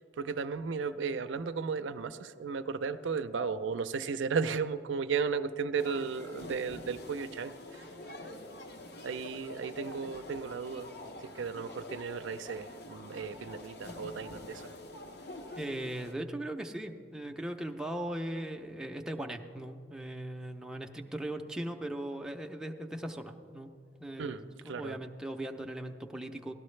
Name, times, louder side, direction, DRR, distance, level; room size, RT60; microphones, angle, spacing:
voice 1, 0.0-7.8 9.0-10.9 11.2-14.7 24.2-25.0, right 5 dB, 85° right, 11 dB, 0.4 m, -35 dB
sound 1, 5.8-16.1, left 2 dB, 55° left, 0.8 m, -46 dB
voice 2, 15.5-23.7 24.0-26.5, right 1 dB, 5° right, 3 dB, 0.5 m, -39 dB
17.5 x 12.5 x 3.2 m, 2.2 s
head